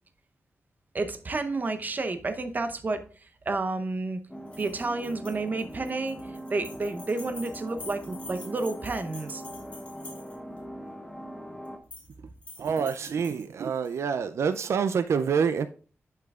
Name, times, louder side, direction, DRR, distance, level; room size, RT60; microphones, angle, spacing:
voice 1, 0.9-3.0 3.5-4.2 4.6-6.2 6.5-9.4, right 3 dB, 40° right, 0.8 m, -30 dB
sound 1, 4.3-11.8, equal, 10° left, 0.8 m, -41 dB
sound 2, 4.5-10.6 11.7-12.1 12.4-13.9, left 2 dB, 30° left, 2.5 m, -47 dB
voice 2, 12.6-15.7, right 6 dB, 80° right, 0.4 m, -27 dB
10.5 x 5.6 x 2.4 m
wide cardioid pair, 140°, 5 cm